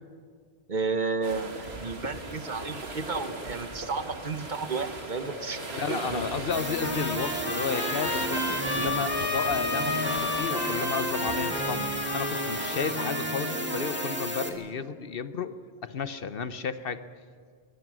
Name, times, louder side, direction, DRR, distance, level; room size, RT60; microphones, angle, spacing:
voice 1, 0.7-6.3, right 4 dB, 50° right, 11 dB, 1.1 m, -32 dB
sound 1, 1.2-12.9, right 2 dB, 80° right, 2.6 m, -38 dB
voice 2, 5.7-8.4 8.7-15.6 15.8-17.0, left 6 dB, 65° left, 13 dB, 1.1 m, -32 dB
sound 2, 6.5-14.5, right 1 dB, 10° right, 2.1 m, -33 dB
Trumpet, 6.8-14.5, left 2 dB, 20° left, 2.5 m, -33 dB
22.5 x 21.5 x 6.2 m, 2.1 s
omnidirectional pair, 1.1 m